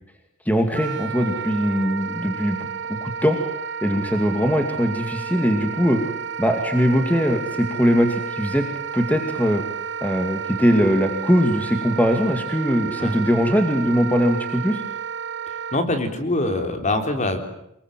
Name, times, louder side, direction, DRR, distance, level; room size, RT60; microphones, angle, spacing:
voice 1, 0.5-3.4 3.8-6.0 6.4-8.7 8.9-9.6 10.0-14.8, equal, 10° left, 5 dB, 2.4 m, -21 dB
Wind instrument woodwind instrument, 0.7-15.8, right 7 dB, 60° right, 1.1 m, -31 dB
voice 2, 15.5-17.4, left 2 dB, 35° left, 6 dB, 3.7 m, -24 dB
25.5 x 22.0 x 9.1 m, 0.77 s
head